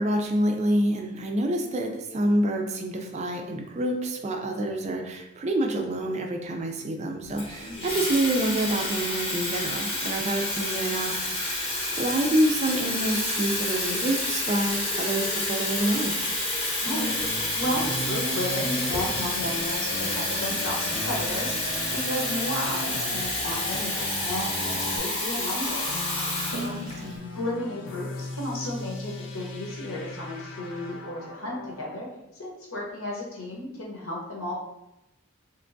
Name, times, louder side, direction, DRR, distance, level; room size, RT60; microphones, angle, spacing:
voice 1, 0.0-16.2 26.4-27.2, right 1 dB, 30° right, 3 dB, 0.3 m, -27 dB
Water tap faucet / Fill (with liquid), 7.4-27.1, left 2 dB, 25° left, 0.8 m, -29 dB
voice 2, 7.6-8.0 16.8-26.0 26.4-26.8 27.3-32.1 32.4-34.5, left 1 dB, 80° left, -3 dB, 1.0 m, -33 dB
sound 1, 16.9-25.0, equal, 5° right, 0.7 m, -37 dB
sound 2, 25.9-32.1, left 3 dB, 60° left, 0.5 m, -39 dB
3.3 x 2.9 x 2.5 m, 0.89 s
head